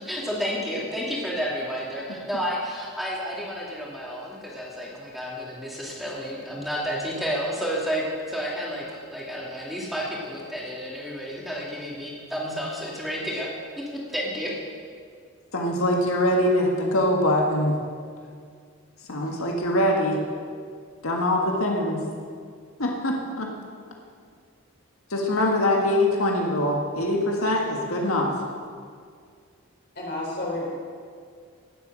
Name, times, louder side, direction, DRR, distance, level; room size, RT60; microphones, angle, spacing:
voice 1, 0.0-13.5 13.8-14.6, equal, ahead, -5 dB, 2.4 m, -31 dB
voice 2, 15.5-17.8 19.1-20.2 21.0-22.0 22.8-23.5 25.1-28.3, left 1 dB, 80° left, 0 dB, 1.6 m, -23 dB
voice 3, 30.0-30.7, left 1 dB, 50° left, -2 dB, 3.7 m, -30 dB
18.0 x 8.0 x 6.2 m, 2.1 s
head